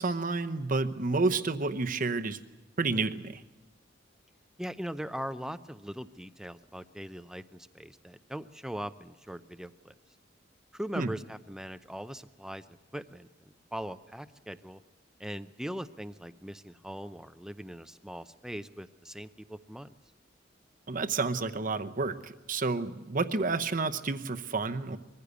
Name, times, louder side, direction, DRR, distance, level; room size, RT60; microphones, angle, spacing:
voice 1, 0.0-2.4 2.8-3.4 10.9-11.1 20.9-25.0, right 3 dB, 45° right, 8 dB, 0.9 m, -30 dB
voice 2, 4.6-9.9 10.7-13.3 13.7-14.8 15.2-19.9, equal, 5° right, 12 dB, 0.6 m, -40 dB
22.0 x 15.0 x 8.2 m, 1.2 s
head